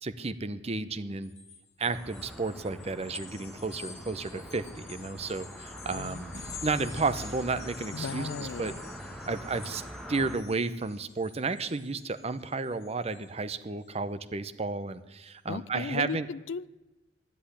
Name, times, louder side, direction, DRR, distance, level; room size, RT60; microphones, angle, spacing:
voice 1, 0.0-1.3 1.8-8.7 9.3-9.8 10.1-16.3, right 3 dB, 35° right, 12 dB, 0.7 m, -32 dB
sound 1, 1.2-13.3, left 6 dB, 35° left, 2.0 m, -48 dB
sound 2, 1.8-10.4, equal, ahead, 1.5 m, -44 dB
voice 2, 5.9-6.2 7.9-8.8 15.5-16.7, left 5 dB, 90° left, 19 dB, 0.4 m, -36 dB
sound 3, 6.3-10.3, right 3 dB, 80° right, 1.2 m, -53 dB
12.0 x 10.5 x 10.0 m, 1.0 s
head